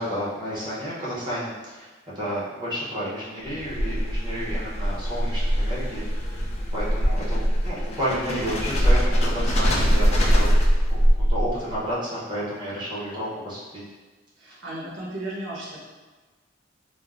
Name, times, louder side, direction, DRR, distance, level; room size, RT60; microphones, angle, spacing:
voice 1, 0.0-1.9 2.2-6.1 6.7-10.5 10.9-11.0 11.3-13.8, equal, 25° right, -8 dB, 0.7 m, -31 dB
sound 1, 3.5-11.8, equal, 35° left, 0.3 m, -22 dB
voice 2, 14.4-15.8, right 1 dB, 85° right, -6 dB, 0.7 m, -34 dB
3.3 x 2.0 x 2.3 m, 1.3 s
head